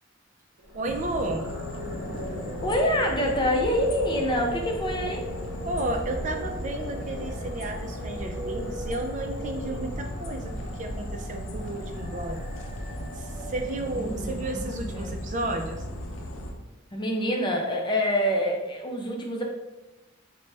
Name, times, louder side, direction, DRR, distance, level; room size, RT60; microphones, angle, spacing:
sound 1, 0.6-14.7, right 1 dB, 75° right, 0.7 m, -38 dB
voice 1, 0.7-1.4 5.6-12.4 13.2-15.8, right 2 dB, 40° right, 4 dB, 0.4 m, -32 dB
sound 2, 0.8-16.5, left 1 dB, 80° left, 0.6 m, -37 dB
voice 2, 2.6-5.2 13.8-15.1 16.9-19.4, equal, 25° left, 0 dB, 0.5 m, -26 dB
3.9 x 2.2 x 3.2 m, 1.1 s
head